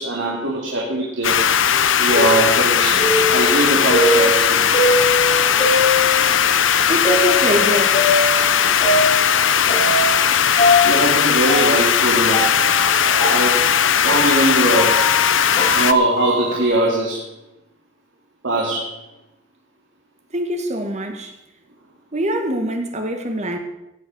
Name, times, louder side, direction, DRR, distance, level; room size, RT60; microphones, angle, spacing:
voice 1, 0.0-1.5 2.0-4.8 10.8-12.6 13.0-13.7 14.0-15.1 15.7-17.2 18.4-19.0, right 2 dB, 70° right, 2.5 m, -21 dB
sound 1, 1.2-15.9, left 8 dB, 75° left, 0.7 m, -17 dB
sound 2, 1.7-6.5 7.0-10.3 10.6-16.7, left 1 dB, 35° left, 6.8 m, -22 dB
voice 2, 6.9-8.0 20.3-21.3 22.1-23.6, right 1 dB, 35° right, 1.9 m, -23 dB
16.0 x 8.1 x 6.3 m
head